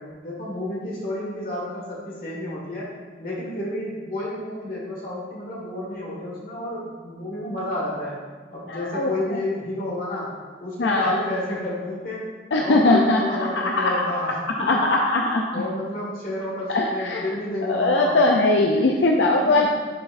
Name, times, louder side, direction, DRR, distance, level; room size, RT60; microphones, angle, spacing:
voice 1, 0.0-2.9 3.2-8.2 8.5-10.3 10.6-14.9 15.2-18.2 18.7-19.0, left 1 dB, 50° left, -5 dB, 1.9 m, -31 dB
voice 2, 8.7-9.4 10.8-11.2 12.5-13.9 14.7-15.4 16.7-17.3 17.7-19.7, left 2 dB, 85° left, 0 dB, 0.5 m, -20 dB
9.7 x 4.2 x 2.6 m, 1.4 s
head